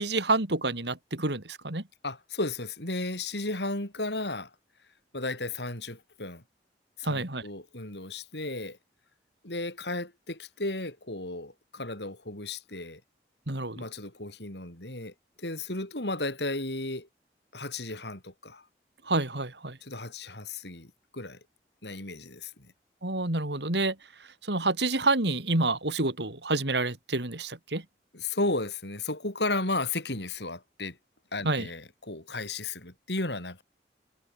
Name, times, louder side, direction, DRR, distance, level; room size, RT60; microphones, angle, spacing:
voice 1, 0.0-1.8 7.0-7.4 13.5-13.8 19.1-19.8 23.0-23.9 24.4-27.8 31.4-31.7, right 2 dB, 80° right, 3.4 m, -28 dB
voice 2, 2.0-4.5 5.1-6.4 7.0-8.8 9.4-13.0 13.8-17.1 17.5-18.6 19.8-21.4 21.8-22.7 28.1-31.0 31.3-33.6, left 2 dB, 80° left, 6.5 m, -34 dB
head